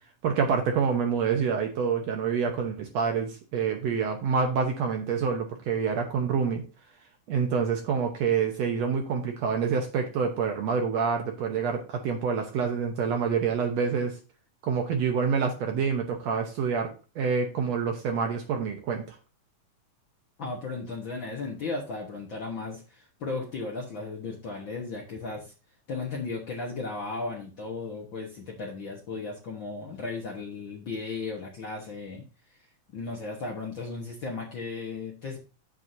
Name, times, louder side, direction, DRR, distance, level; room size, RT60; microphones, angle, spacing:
voice 1, 0.2-6.6 7.3-14.1 14.6-16.9 17.2-19.2, right 6 dB, 65° right, 3 dB, 1.8 m, -27 dB
voice 2, 20.4-25.5 25.9-32.2 32.9-35.4, left 3 dB, 55° left, -1 dB, 1.4 m, -35 dB
8.1 x 7.6 x 2.7 m, 0.33 s
omnidirectional pair, 3.7 m